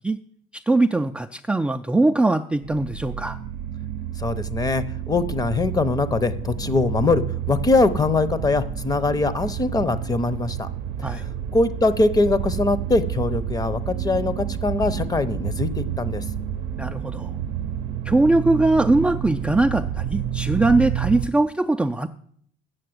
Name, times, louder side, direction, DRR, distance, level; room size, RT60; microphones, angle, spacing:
voice 1, 0.5-3.4 11.0-11.2 16.8-17.3 18.0-22.1, right 2 dB, 5° right, 5 dB, 0.3 m, -21 dB
sound 1, 2.6-21.3, right 10 dB, 85° right, 0.6 m, -30 dB
voice 2, 4.2-10.7 11.1-11.2 11.5-16.2, left 3 dB, 20° left, 14 dB, 0.7 m, -22 dB
7.8 x 6.5 x 7.8 m, 0.63 s
cardioid pair, 110°, 17 cm